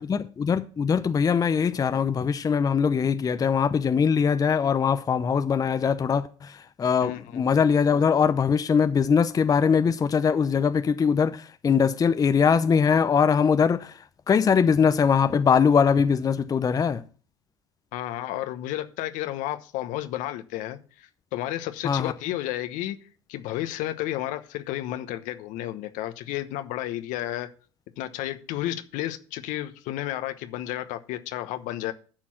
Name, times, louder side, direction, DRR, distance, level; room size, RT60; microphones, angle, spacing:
voice 1, 0.0-17.0 21.8-22.1, left 6 dB, 25° left, 0.7 m, -22 dB
voice 2, 7.0-7.4 17.9-23.0 23.3-27.5 28.0-31.9, left 14 dB, 60° left, 1.1 m, -32 dB
12.0 x 4.5 x 5.9 m
hypercardioid pair, 80°, 15 cm